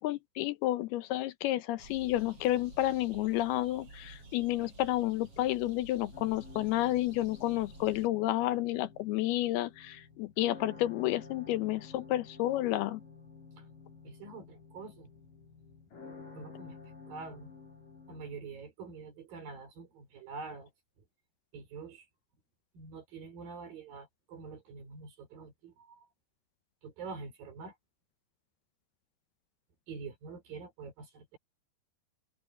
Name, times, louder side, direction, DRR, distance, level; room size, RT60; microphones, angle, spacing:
voice 1, 0.0-13.0, left 15 dB, 75° left, 2.5 m, -31 dB
sound 1, 1.8-8.1, right 2 dB, 30° right, 8.8 m, -52 dB
sound 2, 6.1-18.4, left 4 dB, 50° left, 5.9 m, -51 dB
voice 2, 14.0-15.1 16.3-17.5 18.1-20.7 21.0-21.1 21.5-22.1 22.7-26.1 26.8-27.7 29.9-31.4, right 4 dB, 55° right, 6.2 m, -46 dB
omnidirectional pair, 5.0 m